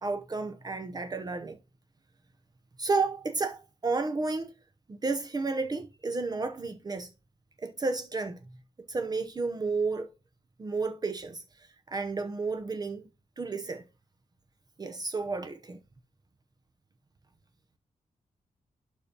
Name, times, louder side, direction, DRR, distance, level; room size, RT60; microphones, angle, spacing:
voice 1, 0.0-1.6 2.8-4.5 4.9-7.1 7.6-8.4 8.9-10.1 10.6-13.0 13.4-13.8 14.8-15.8, right 3 dB, 30° right, 0.8 m, -32 dB
11.5 x 5.2 x 2.9 m
wide cardioid pair, 145°, 14 cm